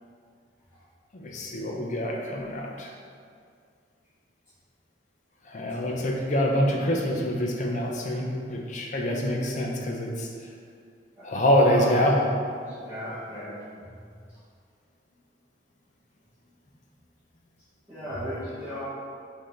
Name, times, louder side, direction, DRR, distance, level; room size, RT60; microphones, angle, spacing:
voice 1, 1.1-2.9 5.5-10.3 11.2-12.3, equal, 40° left, -1 dB, 0.5 m, -25 dB
voice 2, 12.8-13.6 17.9-18.8, equal, 15° right, -16 dB, 1.3 m, -36 dB
5.5 x 2.7 x 3.2 m, 2.2 s
head